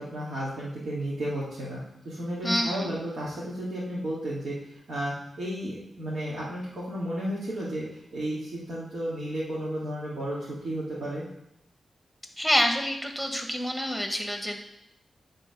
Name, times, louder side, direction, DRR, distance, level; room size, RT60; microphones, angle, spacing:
voice 1, 0.0-4.5 4.9-11.3, right 1 dB, 75° right, -9 dB, 2.2 m, -33 dB
voice 2, 2.4-2.9 12.4-14.6, equal, 5° right, 3 dB, 1.2 m, -27 dB
9.0 x 3.9 x 5.9 m, 0.79 s
wide cardioid pair, 100°, 0 cm